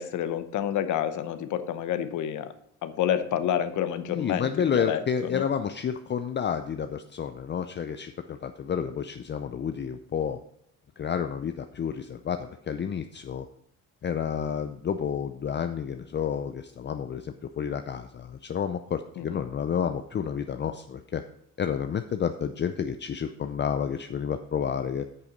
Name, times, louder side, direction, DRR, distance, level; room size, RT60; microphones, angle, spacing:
voice 1, 0.0-2.5 2.8-5.4 19.2-19.4, left 10 dB, 80° left, 11 dB, 0.9 m, -29 dB
voice 2, 4.1-10.4 11.0-13.5 14.0-21.2 21.6-25.1, left 7 dB, 35° left, 9 dB, 0.5 m, -30 dB
8.6 x 6.8 x 5.1 m, 0.72 s
cardioid pair, 90°, 30 cm